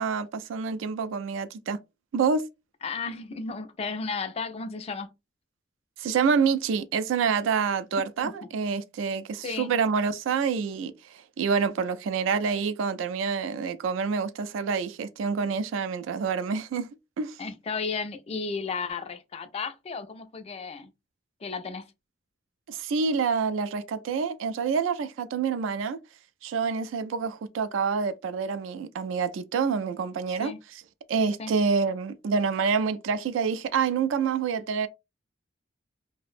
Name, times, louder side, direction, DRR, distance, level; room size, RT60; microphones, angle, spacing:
voice 1, 0.0-1.8 2.1-2.5 6.0-16.9 17.2-17.4 22.7-26.0 26.4-30.8 31.1-34.9, right 5 dB, 85° right, 0.3 m, -27 dB
voice 2, 2.8-5.1 8.2-8.3 9.4-9.8 17.4-20.9 21.4-21.9 30.4-30.6 31.4-31.5, left 4 dB, 30° left, 0.3 m, -34 dB
2.5 x 2.0 x 2.4 m
head